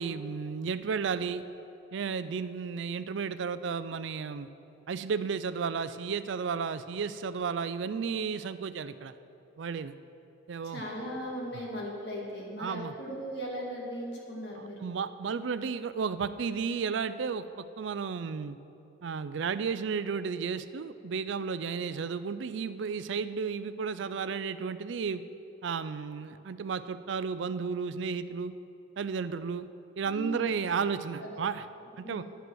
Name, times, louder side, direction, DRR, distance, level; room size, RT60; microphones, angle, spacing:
voice 1, 0.0-1.4 1.9-4.5 4.9-9.1 9.6-9.9 10.5-10.8 12.6-12.9 14.8-18.6 19.0-25.2 25.6-28.5 29.0-29.7 30.0-31.6 32.0-32.2, right 5 dB, 70° right, 13 dB, 0.4 m, -33 dB
voice 2, 10.6-14.9 30.0-30.5 31.2-31.4 32.0-32.2, equal, 55° left, -3 dB, 2.1 m, -38 dB
9.5 x 9.1 x 6.2 m, 2.8 s
head